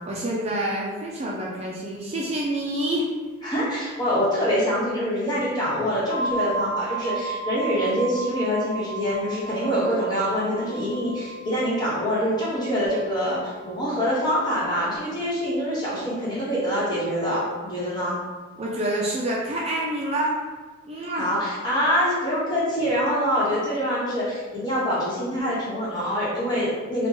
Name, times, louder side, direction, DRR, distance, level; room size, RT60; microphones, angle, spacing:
voice 1, 0.0-3.0 18.6-20.3 20.9-21.3, right 1 dB, 30° right, -4 dB, 0.4 m, -27 dB
voice 2, 3.4-18.2 21.2-27.1, equal, 20° left, -8 dB, 1.1 m, -25 dB
sound 1, 6.1-15.7, right 3 dB, 50° left, 0.4 m, -35 dB
4.2 x 2.2 x 2.8 m, 1.3 s
head